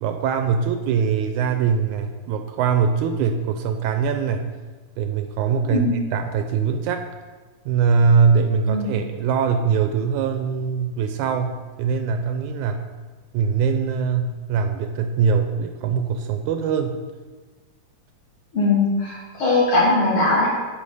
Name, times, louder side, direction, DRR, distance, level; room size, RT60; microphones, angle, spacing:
voice 1, 0.0-4.4 5.0-7.1 7.7-12.9 13.3-17.0, right 6 dB, 80° right, 7 dB, 1.7 m, -22 dB
voice 2, 5.6-5.9 8.7-8.9 18.5-20.7, left 2 dB, 45° left, -6 dB, 2.5 m, -20 dB
10.5 x 4.9 x 5.5 m, 1.3 s
omnidirectional pair, 3.9 m